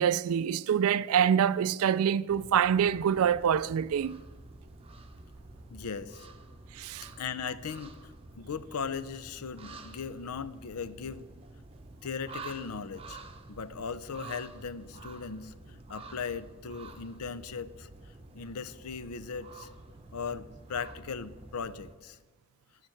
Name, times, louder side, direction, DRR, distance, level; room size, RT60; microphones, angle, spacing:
voice 1, 0.0-4.2 6.8-7.1, right 8 dB, 70° right, 0.3 m, -25 dB
sound 1, 2.3-22.0, right 3 dB, 25° right, 0.8 m, -49 dB
voice 2, 5.7-6.3 7.2-11.3 12.0-13.2 13.5-17.9 18.3-19.7 20.1-22.2, left 6 dB, 80° left, 0.6 m, -38 dB
11.0 x 7.4 x 7.7 m
head